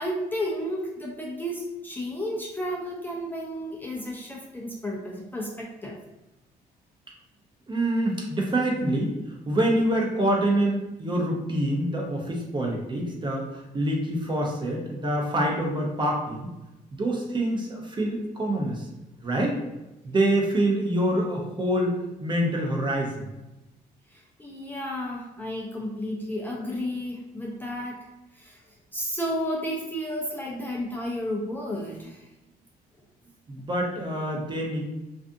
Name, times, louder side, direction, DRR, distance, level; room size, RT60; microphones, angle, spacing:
voice 1, 0.0-6.0 24.1-28.6 28.9-32.3, equal, 10° left, -3 dB, 0.4 m, -32 dB
voice 2, 7.7-9.1 9.5-16.5 16.9-18.9 19.2-19.6 20.0-23.3 33.5-34.8, right 1 dB, 30° right, 0 dB, 0.6 m, -26 dB
2.5 x 2.4 x 2.5 m, 0.99 s
cardioid pair, 100°, 16 cm